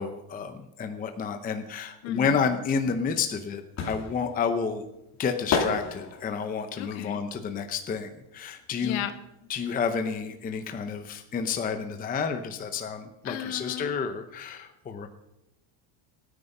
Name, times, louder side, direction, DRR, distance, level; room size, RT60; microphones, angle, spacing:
voice 1, 0.0-4.8 5.2-9.0 9.5-15.1, left 6 dB, 15° left, 7 dB, 0.7 m, -30 dB
voice 2, 2.0-2.6 6.8-7.2 8.8-9.1 13.2-14.0, left 12 dB, 70° left, 8 dB, 1.8 m, -34 dB
sound 1, 3.4-8.7 9.0-10.6 10.9-11.0, left 5 dB, 35° left, 3.0 m, -33 dB
25.0 x 9.8 x 5.4 m, 0.90 s
cardioid pair, 180°, 50 cm